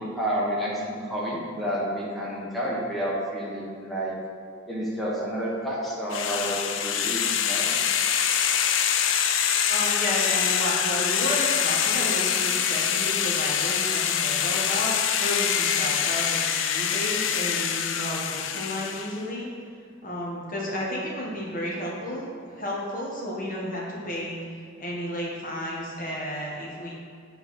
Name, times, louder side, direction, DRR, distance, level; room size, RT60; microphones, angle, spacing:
voice 1, 0.0-4.1 4.7-7.7, equal, ahead, -7 dB, 1.4 m, -30 dB
sound 1, 6.1-19.2, left 8 dB, 70° left, 0.5 m, -25 dB
voice 2, 9.7-14.9 15.2-19.5 20.0-24.4 24.8-26.9, left 1 dB, 45° left, -5 dB, 1.6 m, -32 dB
7.7 x 4.2 x 4.3 m, 2.3 s
head